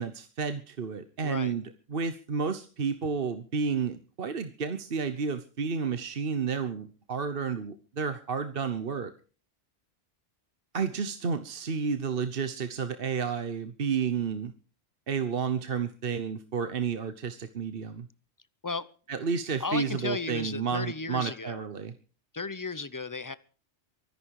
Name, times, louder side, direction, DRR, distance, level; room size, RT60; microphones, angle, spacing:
voice 1, 0.0-9.1 10.7-14.5 15.1-18.1 19.1-21.9, right 6 dB, 50° right, 10 dB, 1.2 m, -31 dB
voice 2, 1.2-1.5 18.6-18.9 19.6-21.6 22.3-23.3, left 3 dB, 20° left, 16 dB, 0.7 m, -34 dB
23.5 x 11.0 x 4.8 m, 0.38 s
omnidirectional pair, 1.3 m